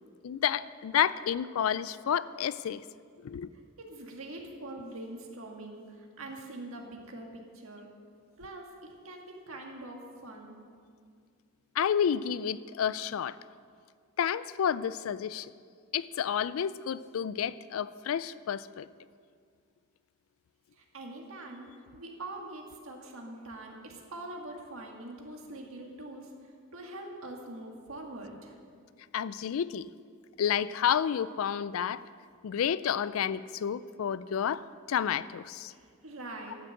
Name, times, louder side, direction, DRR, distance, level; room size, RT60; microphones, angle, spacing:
voice 1, 0.2-2.8 3.2-3.5 11.8-13.4 14.2-15.5 15.9-18.9 29.1-29.9 30.4-32.0 32.4-35.7, left 8 dB, 75° left, 17 dB, 0.3 m, -30 dB
voice 2, 3.5-7.9 8.4-10.5 20.7-28.6 35.7-36.5, right 2 dB, 75° right, 1 dB, 1.7 m, -44 dB
12.0 x 6.3 x 7.7 m, 2.1 s
head